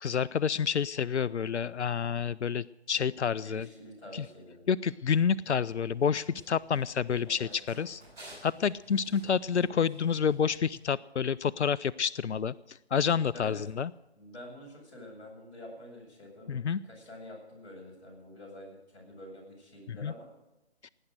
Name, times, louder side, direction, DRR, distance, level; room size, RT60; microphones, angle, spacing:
voice 1, 0.0-3.7 4.1-4.2 4.7-8.0 8.4-12.5 12.9-13.9 16.5-16.8 19.9-20.1 20.8-20.9, left 7 dB, 85° left, 19 dB, 0.5 m, -29 dB
voice 2, 3.4-4.7 7.2-7.5 13.3-13.6 14.1-20.3, left 1 dB, 15° left, -6 dB, 6.4 m, -47 dB
Run, 5.7-10.8, right 1 dB, 10° right, 6.2 m, -54 dB
18.0 x 10.0 x 6.5 m, 0.96 s
figure-of-eight pair, 150°, 33 cm